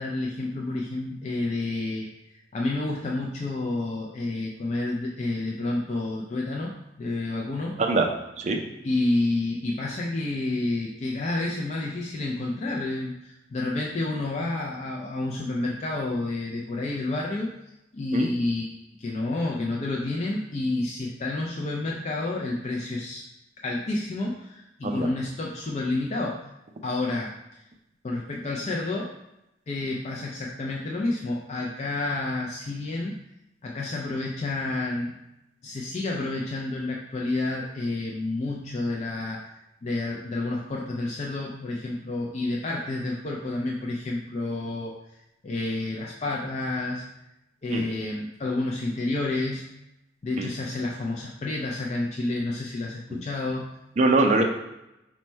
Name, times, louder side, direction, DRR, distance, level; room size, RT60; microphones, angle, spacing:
voice 1, 0.0-2.1 2.5-6.7 7.0-7.8 8.8-17.5 17.9-23.3 23.6-26.5 26.8-27.6 28.0-29.1 29.7-33.1 33.6-35.2 35.6-39.6 39.8-45.0 45.4-47.0 47.6-49.7 50.2-53.8, left 2 dB, 35° left, -2 dB, 0.3 m, -29 dB
voice 2, 54.0-54.4, right 2 dB, 40° right, 3 dB, 0.4 m, -22 dB
4.2 x 2.1 x 4.3 m, 0.89 s
head